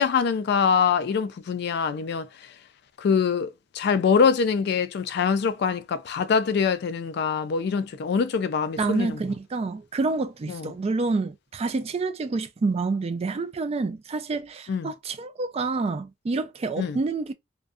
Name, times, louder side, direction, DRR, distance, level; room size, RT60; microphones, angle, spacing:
voice 1, 0.0-2.3 3.0-9.2 10.5-10.7 14.7-14.9 16.8-17.0, left 6 dB, 60° left, 0.3 m, -24 dB
voice 2, 8.8-17.3, right 3 dB, 35° right, 0.3 m, -28 dB
2.5 x 2.2 x 2.3 m
head